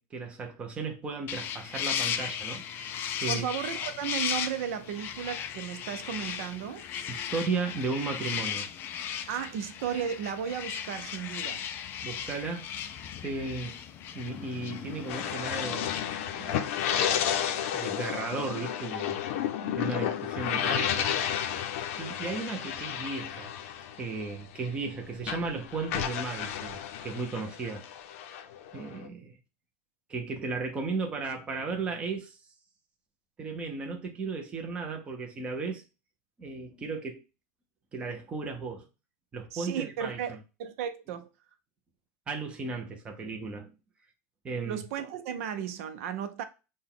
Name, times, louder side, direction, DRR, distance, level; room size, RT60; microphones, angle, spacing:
voice 1, 0.0-2.6 3.2-3.5 7.1-8.7 12.0-12.7 13.2-13.8 14.1-16.1 16.3-16.6 17.7-19.2 19.8-21.2 22.0-23.5 24.0-27.8 28.7-29.4 30.1-32.4 33.4-35.8 36.4-37.2 37.9-38.9 39.3-40.4 42.3-43.7 44.4-44.8, right 4 dB, 15° right, 0.6 m, -35 dB
sound 1, 1.3-15.3, left 9 dB, 25° left, 0.3 m, -36 dB
voice 2, 3.3-6.8 9.3-11.7 39.5-41.3 44.6-46.4, right 8 dB, 60° right, 0.7 m, -34 dB
sound 2, 15.1-24.9 25.2-29.1, left 9 dB, 60° left, 0.6 m, -32 dB
6.4 x 2.2 x 3.7 m
supercardioid pair, 180°, 8 cm